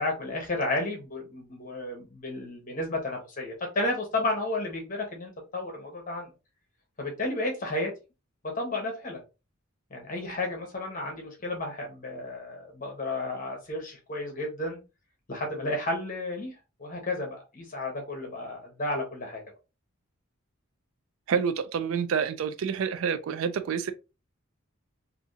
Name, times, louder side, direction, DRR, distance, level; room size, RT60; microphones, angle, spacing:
voice 1, 0.0-6.3 7.0-7.9 8.4-9.2 9.9-14.8 15.3-16.5 16.8-19.4, left 2 dB, 40° left, 1.1 m, -32 dB
voice 2, 21.3-23.9, right 6 dB, 80° right, 0.4 m, -28 dB
3.4 x 2.8 x 2.7 m
head